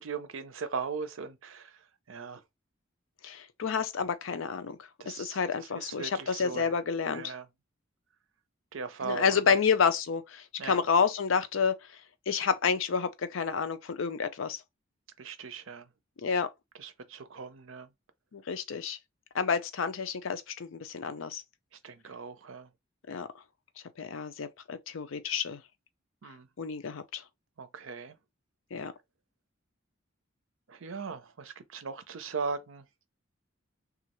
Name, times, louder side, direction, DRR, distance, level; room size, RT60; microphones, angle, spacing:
voice 1, 0.0-2.4 5.0-6.8 7.0-7.5 8.7-9.5 10.6-10.8 15.2-15.9 16.8-17.9 21.8-22.7 26.2-26.5 27.6-28.2 30.7-32.8, right 5 dB, 80° right, 0.6 m, -39 dB
voice 2, 3.2-7.3 9.0-11.7 12.3-14.6 16.2-16.5 18.3-19.0 19.3-21.4 23.1-23.3 24.0-25.6 26.6-27.2 28.7-28.9, left 6 dB, 75° left, 0.5 m, -29 dB
3.1 x 2.4 x 3.0 m
head